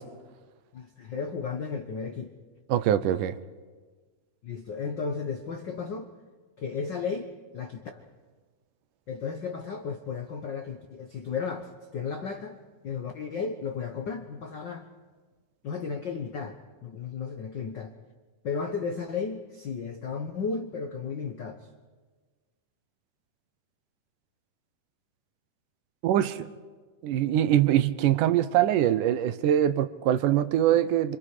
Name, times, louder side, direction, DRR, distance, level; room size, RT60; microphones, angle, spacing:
voice 1, 0.7-2.3 3.1-3.2 4.4-6.1 6.6-8.0 9.1-12.6 12.8-14.9 15.6-17.9 18.4-21.7, left 5 dB, 75° left, 1.0 m, -34 dB
voice 2, 2.7-3.4 26.0-26.5 27.0-31.2, right 11 dB, 75° right, 2.3 m, -23 dB
27.0 x 27.0 x 5.0 m
omnidirectional pair, 3.9 m